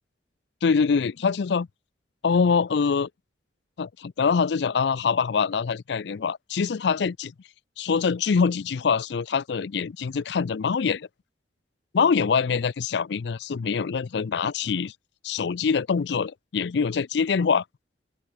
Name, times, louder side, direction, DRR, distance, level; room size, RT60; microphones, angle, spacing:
voice 1, 0.6-1.7 2.2-3.1 3.8-7.3 7.8-11.1 11.9-14.9 15.2-17.6, left 5 dB, 65° left, 0.4 m, -24 dB
open air
head